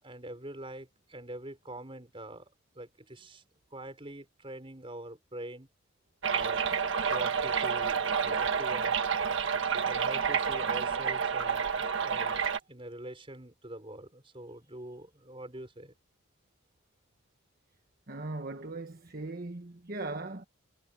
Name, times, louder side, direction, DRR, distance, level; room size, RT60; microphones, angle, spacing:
voice 1, 0.0-2.5 2.8-3.4 3.7-5.7 6.3-6.7 7.1-9.0 9.8-11.7 12.0-15.9, right 1 dB, 25° right, 5.2 m, -44 dB
sound 1, 6.2-12.6, right 6 dB, 60° right, 1.5 m, -29 dB
voice 2, 18.1-20.4, right 2 dB, 45° right, 1.2 m, -39 dB
head